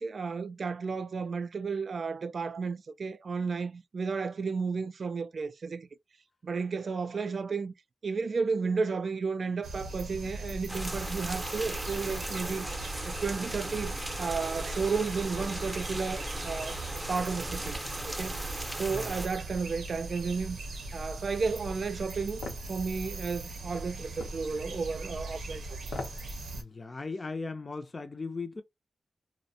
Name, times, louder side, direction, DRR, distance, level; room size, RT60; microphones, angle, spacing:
voice 1, 0.0-5.9 6.4-7.7 8.0-12.7 13.0-16.8 17.1-18.4 18.8-20.6 20.9-22.4 22.7-25.6, right 5 dB, 65° right, 0.3 m, -33 dB
sound 1, 9.6-26.6, right 2 dB, 85° right, 0.7 m, -40 dB
sound 2, 10.7-19.3, right 1 dB, 10° right, 0.6 m, -38 dB
sound 3, 22.4-22.7 24.2-24.4 25.8-26.2 26.6-26.7, left 3 dB, 90° left, 0.6 m, -39 dB
voice 2, 26.5-28.6, left 3 dB, 40° left, 0.4 m, -38 dB
2.5 x 2.1 x 2.6 m
cardioid pair, 65°, 0 cm